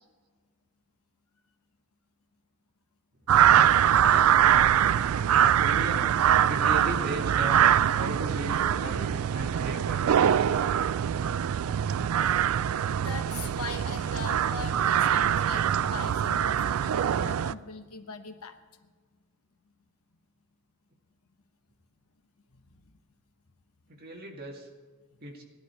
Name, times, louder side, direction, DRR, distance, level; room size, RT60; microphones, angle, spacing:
sound 1, 3.3-17.5, right 9 dB, 75° right, 0.3 m, -23 dB
voice 1, 4.0-4.8 5.3-6.1 6.5-7.6 7.9-10.5 23.9-24.7 25.2-25.4, right 1 dB, 45° right, -1 dB, 2.1 m, -37 dB
voice 2, 13.0-18.6 18.8-18.9 22.5-22.9, left 4 dB, 90° left, 8 dB, 1.0 m, -41 dB
17.5 x 11.5 x 4.4 m, 1.4 s
head